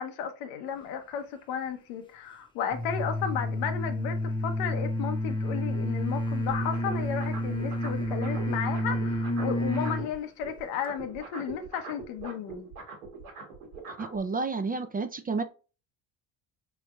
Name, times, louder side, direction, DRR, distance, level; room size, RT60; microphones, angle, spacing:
voice 1, 0.0-12.7, left 8 dB, 80° left, 0.8 m, -34 dB
sound 1, 2.7-10.1, left 1 dB, 10° left, 0.8 m, -30 dB
sound 2, 6.5-10.2 10.4-14.2, right 4 dB, 90° right, 1.4 m, -42 dB
voice 2, 14.0-15.4, right 4 dB, 20° right, 0.4 m, -30 dB
4.1 x 3.2 x 2.4 m
hypercardioid pair, 65°, 44 cm